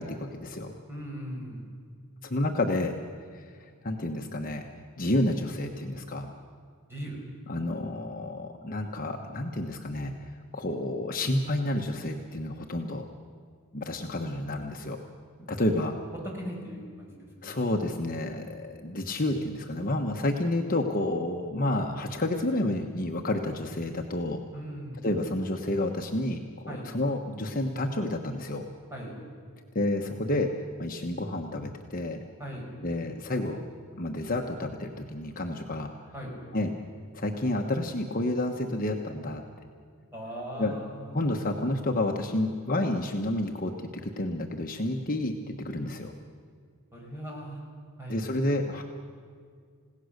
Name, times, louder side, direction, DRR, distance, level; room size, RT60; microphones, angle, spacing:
voice 1, 0.0-0.7 2.2-2.9 3.3-3.4 3.8-4.6 5.0-6.3 7.5-10.1 10.5-13.0 13.7-15.0 15.5-15.9 17.4-24.4 25.0-28.6 29.7-30.5 30.8-32.2 32.8-33.6 33.9-35.9 36.5-36.7 37.1-39.4 40.6-40.8 41.1-46.1 48.1-48.8, left 1 dB, 40° left, 2 dB, 1.1 m, -30 dB
voice 2, 0.9-1.7 6.9-7.2 15.4-15.5 16.3-17.6 24.5-25.1 26.7-26.9 28.9-29.2 32.4-32.7 36.1-36.4 40.1-41.5 46.9-47.6 48.0-48.4, equal, 10° right, -2 dB, 5.4 m, -39 dB
29.0 x 17.0 x 6.6 m, 2.1 s
head